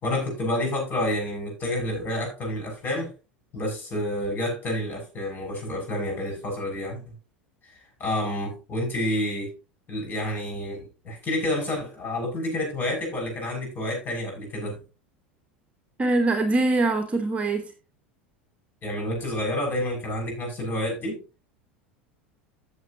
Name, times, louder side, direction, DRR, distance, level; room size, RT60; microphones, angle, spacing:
voice 1, 0.0-3.1 3.5-7.1 7.7-9.5 9.9-14.8 18.8-21.2, left 1 dB, 30° left, 7.0 m, -29 dB
voice 2, 16.0-17.7, right 2 dB, 20° right, 1.4 m, -23 dB
15.0 x 7.0 x 2.9 m
figure-of-eight pair, 75°, 6 cm